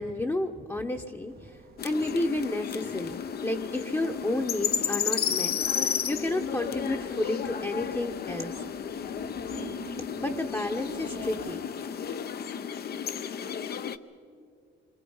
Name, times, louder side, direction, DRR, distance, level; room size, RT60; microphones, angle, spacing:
voice 1, 0.0-8.5 10.2-11.9, left 1 dB, 15° left, 1 dB, 0.9 m, -31 dB
sound 1, 1.3-11.5, right 7 dB, 50° right, 0.9 m, -49 dB
sound 2, 1.8-14.0, left 7 dB, 50° left, 0.7 m, -33 dB
27.0 x 22.5 x 5.5 m, 2.4 s
cardioid pair, 90°, 20 cm